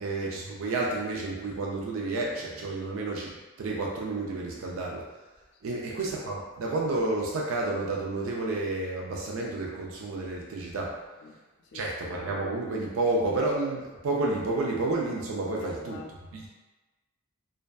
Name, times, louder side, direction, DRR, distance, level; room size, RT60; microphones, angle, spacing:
voice 1, 0.0-5.0 5.6-10.9 11.7-16.0 16.3-16.5, right 2 dB, 75° right, -3 dB, 0.4 m, -30 dB
voice 2, 11.2-11.9 15.6-16.5, left 2 dB, 55° left, 1 dB, 0.4 m, -47 dB
2.5 x 2.2 x 2.2 m, 1.2 s
head